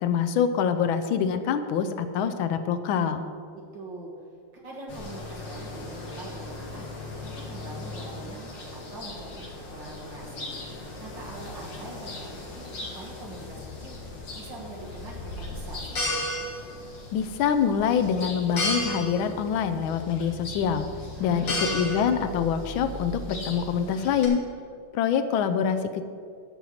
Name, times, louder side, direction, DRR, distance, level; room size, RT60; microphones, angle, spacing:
voice 1, 0.0-3.3 17.1-20.9 21.2-24.4 24.9-26.1, left 7 dB, 75° left, 9 dB, 1.4 m, -25 dB
voice 2, 3.7-4.1 4.5-6.9 7.2-14.0 14.3-16.0 21.2-21.8, right 2 dB, 55° right, -3 dB, 2.3 m, -43 dB
sound 1, 4.9-24.3, left 1 dB, 55° left, 2.3 m, -36 dB
13.0 x 4.6 x 7.2 m, 2.3 s
omnidirectional pair, 2.4 m